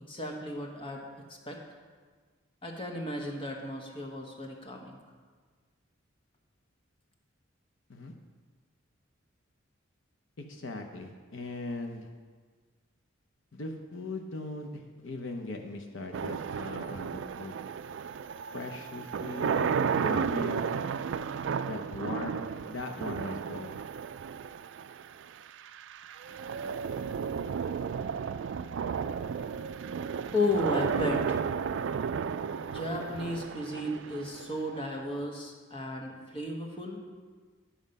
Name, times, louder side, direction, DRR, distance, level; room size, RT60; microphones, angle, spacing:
voice 1, 0.0-1.6 2.6-5.0 30.3-31.5 32.6-37.0, left 1 dB, 25° left, 1 dB, 1.2 m, -34 dB
voice 2, 10.5-12.1 13.5-17.6 18.5-20.9 21.6-23.8 26.3-26.4 26.6-27.7, left 2 dB, 70° left, 3 dB, 0.8 m, -40 dB
sound 1, 16.1-35.2, right 6 dB, 65° right, 0.3 m, -33 dB
10.0 x 7.4 x 5.4 m, 1.5 s
head